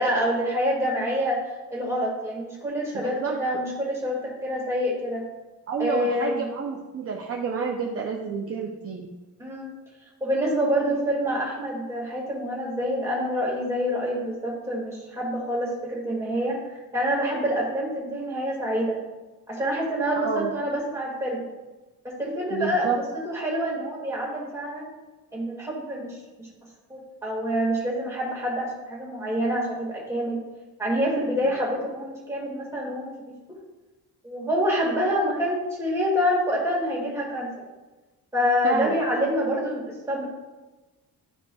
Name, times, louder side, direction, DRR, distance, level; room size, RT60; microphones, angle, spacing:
voice 1, 0.0-1.4 1.7-5.3 5.8-6.4 9.4-9.7 10.2-19.0 19.5-21.5 22.0-22.9 23.3-24.9 25.3-26.5 26.9-30.4 30.8-33.2 34.2-37.5 38.3-40.3, equal, 10° right, -4 dB, 2.1 m, -27 dB
voice 2, 2.9-3.4 5.7-9.1 20.2-20.5 22.5-23.0 38.6-38.9, right 5 dB, 40° right, 0 dB, 0.6 m, -29 dB
11.5 x 5.0 x 2.3 m, 1.1 s
cardioid pair, 160°, 38 cm